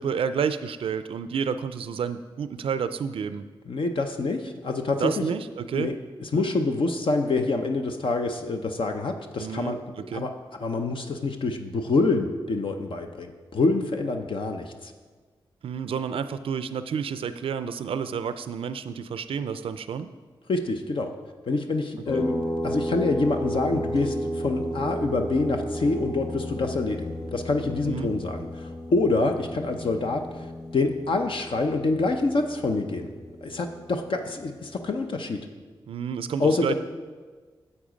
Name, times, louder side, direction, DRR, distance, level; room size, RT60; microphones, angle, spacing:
voice 1, 0.0-3.4 5.0-6.0 6.3-6.4 9.4-10.3 15.6-20.1 27.8-28.1 35.9-36.7, right 7 dB, 75° right, 12 dB, 0.4 m, -30 dB
voice 2, 3.7-5.1 5.7-9.8 10.1-10.3 10.6-14.9 20.5-21.1 21.5-33.1 33.4-35.5 36.4-36.7, left 3 dB, 65° left, 5 dB, 0.7 m, -26 dB
sound 1, 22.1-35.2, equal, 45° left, 3.1 m, -34 dB
8.7 x 7.2 x 5.1 m, 1.4 s
cardioid pair, 55°, 9 cm